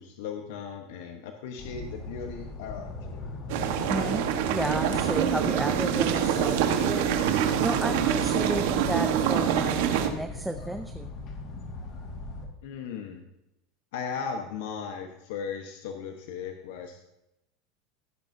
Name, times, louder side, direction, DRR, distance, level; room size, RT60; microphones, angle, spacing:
voice 1, 0.0-3.2 12.6-13.2 13.9-17.0, left 6 dB, 75° left, 4 dB, 1.1 m, -37 dB
sound 1, 1.6-12.5, left 3 dB, 45° left, 1.9 m, -40 dB
sound 2, 3.5-10.1, right 9 dB, 70° right, 1.3 m, -25 dB
voice 2, 3.9-7.0 7.6-11.1, right 1 dB, 5° right, 7 dB, 0.5 m, -32 dB
16.0 x 9.3 x 2.7 m, 0.86 s
supercardioid pair, 140°, 0 cm